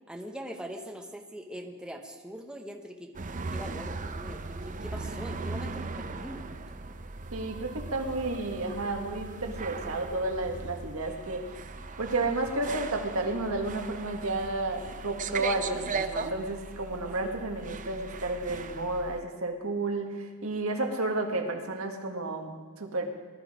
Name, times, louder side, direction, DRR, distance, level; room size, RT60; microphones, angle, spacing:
voice 1, 0.1-3.1 3.5-6.4, equal, 5° right, 2 dB, 1.0 m, -42 dB
sound 1, 3.1-19.2, right 4 dB, 35° right, 0.6 m, -38 dB
voice 2, 7.3-11.5 12.0-23.1, right 2 dB, 70° right, 3 dB, 1.8 m, -32 dB
20.0 x 12.0 x 5.0 m, 1.4 s
head